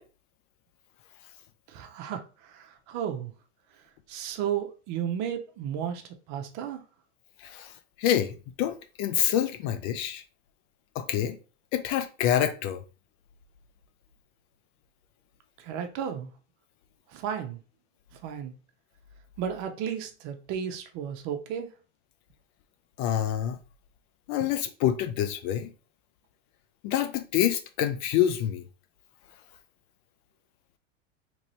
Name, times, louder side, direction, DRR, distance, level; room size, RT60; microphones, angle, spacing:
voice 1, 1.7-2.2 2.5-3.3 4.1-6.0 6.3-6.8 15.6-16.3 17.1-17.6 18.2-18.5 19.4-21.7, right 8 dB, 45° right, 0.7 m, -33 dB
voice 2, 7.4-10.2 11.0-11.4 11.7-12.8 23.0-23.6 24.3-25.7 26.8-28.6, left 10 dB, 45° left, 0.4 m, -27 dB
3.0 x 2.6 x 3.1 m
hypercardioid pair, 100°, 39 cm